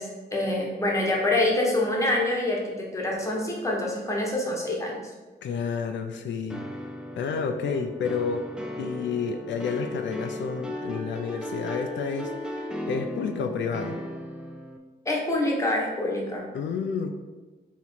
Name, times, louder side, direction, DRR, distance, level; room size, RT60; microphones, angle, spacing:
voice 1, 0.0-5.0 15.0-16.4, left 1 dB, 15° left, -2 dB, 0.9 m, -26 dB
voice 2, 5.4-6.6 7.2-8.5 8.8-14.0 16.5-17.1, left 5 dB, 80° left, 6 dB, 0.4 m, -30 dB
sound 1, 6.5-14.8, equal, 5° right, 0.3 m, -36 dB
4.0 x 3.0 x 4.3 m, 1.3 s
wide cardioid pair, 175°, 19 cm